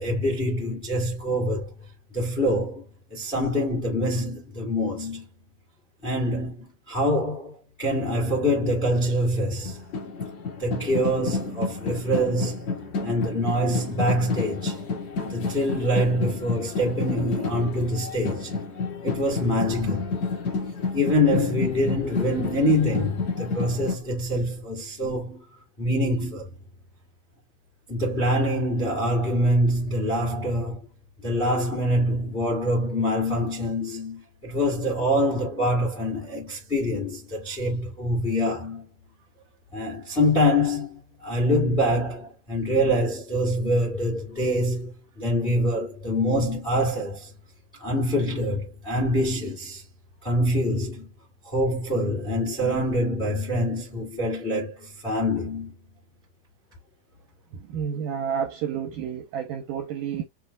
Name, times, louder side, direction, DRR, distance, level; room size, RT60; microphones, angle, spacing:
voice 1, 0.0-1.7 2.1-2.8 3.1-5.3 6.0-9.8 10.6-12.7 13.0-14.8 15.3-18.5 19.0-20.1 20.9-25.4 25.8-26.5 27.9-30.8 31.2-38.9 39.7-47.3 47.7-49.8 50.2-51.1 51.4-55.7, equal, 30° left, 1.0 m, -25 dB
sound 1, 9.4-24.0, left 4 dB, 50° left, 2.4 m, -30 dB
voice 2, 57.5-60.2, right 8 dB, 85° right, 1.9 m, -30 dB
7.4 x 2.5 x 2.2 m
omnidirectional pair, 4.6 m